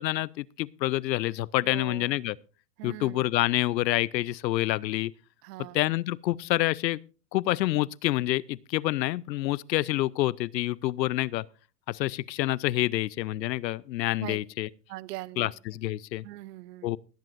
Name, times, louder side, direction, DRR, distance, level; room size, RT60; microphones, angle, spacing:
voice 1, 0.0-2.4 2.8-5.1 5.7-7.0 7.3-11.4 11.9-14.7 15.4-16.2 16.8-17.0, left 16 dB, 90° left, 0.6 m, -27 dB
voice 2, 1.6-2.2 2.8-3.3 5.4-5.8 14.2-14.4 14.9-15.5 16.2-16.9, right 17 dB, 70° right, 0.7 m, -41 dB
20.5 x 10.5 x 2.5 m
hypercardioid pair, 105°, 49 cm